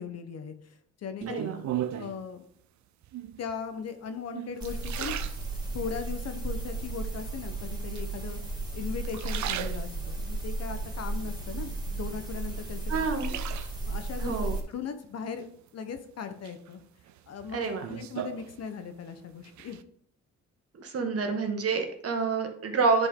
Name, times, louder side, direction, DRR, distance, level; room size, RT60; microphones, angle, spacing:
voice 1, 0.0-1.4 1.9-2.5 3.4-5.2 5.7-13.0 13.3-13.5 13.9-14.4 14.7-15.5 15.7-16.8 17.3-17.6 17.9-19.8, left 6 dB, 55° left, 8 dB, 1.0 m, -38 dB
sound 1, 1.2-2.3 3.0-3.5 4.1-6.0 6.5-7.1 8.0-8.6 9.0-10.3 10.8-12.0 12.4-14.0 15.4-16.0 16.4-19.1 19.3-19.8, right 12 dB, 70° right, 0.6 m, -38 dB
voice 2, 1.3-1.6 12.9-13.3 14.2-14.6 17.5-17.8 20.8-23.1, right 4 dB, 50° right, 4 dB, 1.5 m, -28 dB
sound 2, 4.6-14.6, right 3 dB, 15° right, 2.2 m, -34 dB
9.9 x 4.3 x 3.8 m, 0.65 s
cardioid pair, 90°, 30 cm